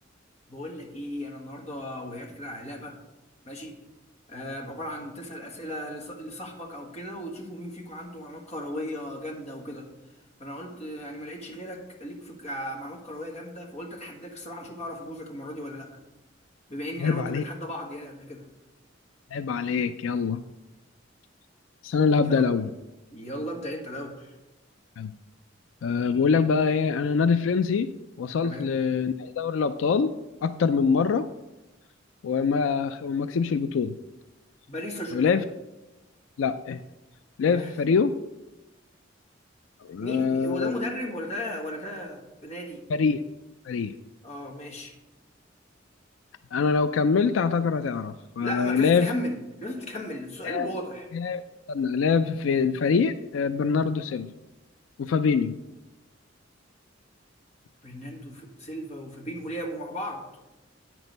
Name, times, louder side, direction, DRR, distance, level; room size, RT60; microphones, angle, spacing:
voice 1, 0.5-3.0 3.4-3.7 4.3-9.9 10.4-15.9 16.7-18.5 22.2-22.4 23.1-24.3 28.4-28.7 34.7-35.4 37.4-37.7 40.0-42.8 44.2-44.9 48.4-51.1 57.8-60.2, equal, 35° left, 1 dB, 1.6 m, -36 dB
voice 2, 17.0-17.4 19.3-20.4 21.8-22.7 25.0-25.1 25.8-27.9 28.2-30.1 30.4-31.3 32.2-33.9 35.1-35.4 36.4-36.8 37.4-38.1 39.8-40.7 42.9-43.2 43.7-43.9 46.5-49.1 50.4-50.7 51.1-51.4 51.7-54.3 55.0-55.6, left 5 dB, 80° left, 11 dB, 0.4 m, -24 dB
9.0 x 6.1 x 5.3 m, 1.0 s
head